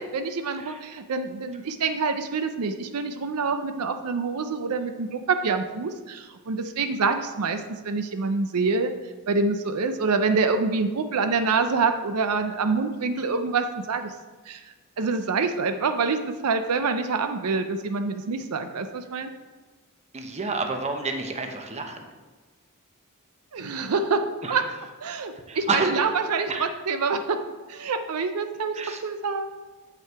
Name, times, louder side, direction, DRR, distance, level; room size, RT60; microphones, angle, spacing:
voice 1, 0.1-8.9 9.3-14.1 14.5-14.6 15.0-19.3 23.5-24.2 24.5-24.6 25.0-27.4 27.7-28.8 29.0-29.6, right 4 dB, 85° right, 8 dB, 0.5 m, -26 dB
voice 2, 20.1-22.1 24.4-24.6 25.5-26.1 26.5-26.7 28.7-29.0, right 3 dB, 30° right, 4 dB, 0.9 m, -29 dB
7.7 x 5.8 x 4.6 m, 1.3 s
head